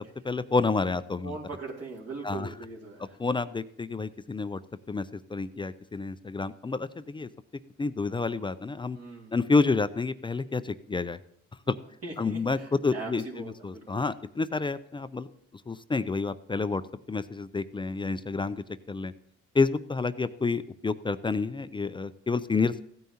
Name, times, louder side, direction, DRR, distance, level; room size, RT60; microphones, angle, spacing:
voice 1, 0.2-1.4 2.2-2.5 3.2-4.6 4.9-7.3 7.8-9.0 9.3-11.2 11.7-11.8 12.2-13.2 13.6-15.3 15.7-16.8 17.1-19.1 19.5-22.8, left 4 dB, 15° left, 13 dB, 0.3 m, -29 dB
voice 2, 1.2-3.2 8.9-9.4 12.0-14.1, right 3 dB, 55° right, -2 dB, 2.4 m, -40 dB
15.5 x 9.2 x 2.8 m, 0.70 s
cardioid pair, 90°, 30 cm